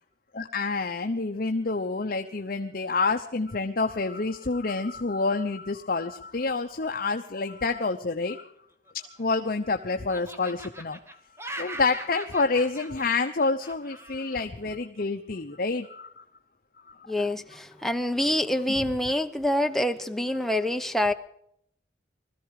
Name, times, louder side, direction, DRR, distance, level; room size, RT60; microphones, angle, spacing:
voice 1, 0.3-8.5 8.9-11.0 11.6-16.2 16.9-17.3 18.7-18.8, left 3 dB, 55° left, 5 dB, 0.9 m, -28 dB
Laughter, 8.9-9.7 10.1-14.5, right 1 dB, 15° right, 1.3 m, -42 dB
voice 2, 17.1-21.1, left 1 dB, ahead, 6 dB, 0.9 m, -26 dB
20.5 x 14.5 x 4.9 m, 0.70 s
head